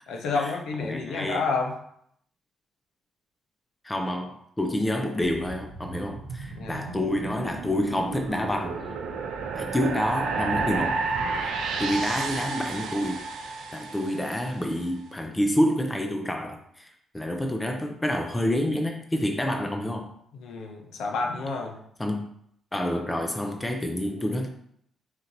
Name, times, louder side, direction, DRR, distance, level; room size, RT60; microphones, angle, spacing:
voice 1, 0.1-1.7 6.5-6.9 20.3-21.8, left 4 dB, 75° left, 2 dB, 0.8 m, -30 dB
voice 2, 0.8-1.4 3.8-8.8 9.5-11.0 11.3-11.5 11.8-13.3 13.7-20.1 22.0-22.3 22.7-24.5, left 1 dB, 15° left, 4 dB, 0.5 m, -28 dB
sound 1, 5.2-14.6, right 4 dB, 90° right, 0.6 m, -32 dB
4.4 x 2.8 x 3.9 m, 0.70 s
cardioid pair, 90°, 0 cm